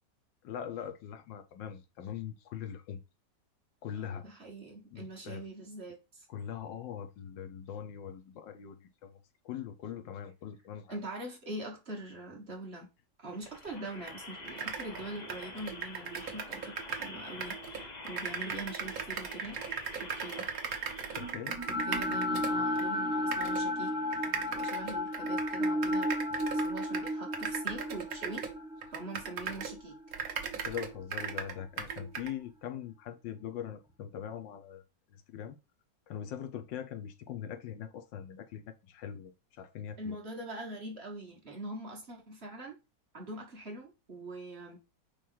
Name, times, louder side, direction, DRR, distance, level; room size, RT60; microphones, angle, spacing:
voice 1, 0.4-3.0 3.8-4.2 4.9-5.4 6.3-9.2 9.4-11.0 21.1-21.6 30.6-34.8 35.1-35.6 36.1-40.2, left 9 dB, 80° left, 1.5 m, -42 dB
voice 2, 4.0-6.3 10.9-12.9 13.2-19.6 20.0-20.5 21.7-23.9 24.5-26.1 26.5-28.5 28.9-30.0 40.0-42.8 43.1-44.8, right 1 dB, 40° right, 1.5 m, -43 dB
sound 1, 13.3-21.3, left 3 dB, 35° left, 0.7 m, -47 dB
sound 2, 14.1-14.2 14.5-17.1 17.4-22.9 23.3-23.6 24.1-29.8 30.1-32.3, right 6 dB, 55° right, 1.3 m, -38 dB
sound 3, 21.2-31.4, left 1 dB, 5° right, 0.6 m, -34 dB
5.4 x 3.4 x 5.5 m
omnidirectional pair, 1.9 m